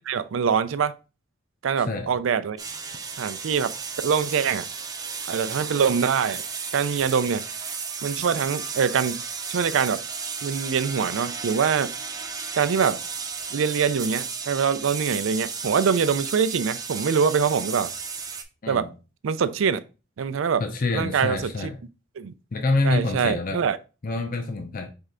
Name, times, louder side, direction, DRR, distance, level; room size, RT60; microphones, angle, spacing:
voice 1, 0.1-0.9 1.6-2.6 3.2-3.7 4.0-4.7 5.3-6.4 6.7-7.4 8.0-9.2 9.5-10.0 10.4-11.9 12.5-13.0 13.5-17.9 18.7-18.9 19.2-19.8 20.2-20.6 20.9-21.7 22.2-22.3 22.8-23.8, right 6 dB, 90° right, 0.4 m, -24 dB
sound 1, 2.6-18.4, right 5 dB, 20° right, 0.5 m, -34 dB
voice 2, 20.6-21.8 22.5-23.6 24.0-24.9, left 3 dB, 45° left, 0.5 m, -26 dB
4.5 x 3.2 x 3.7 m
head